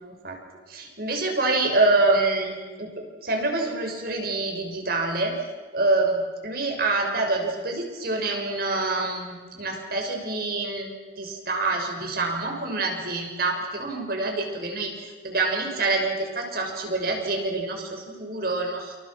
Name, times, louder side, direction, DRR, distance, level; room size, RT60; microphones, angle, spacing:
voice 1, 0.7-5.3 5.7-14.9 15.2-19.0, right 2 dB, 60° right, 3 dB, 6.4 m, -26 dB
28.5 x 28.0 x 6.1 m, 1.4 s
head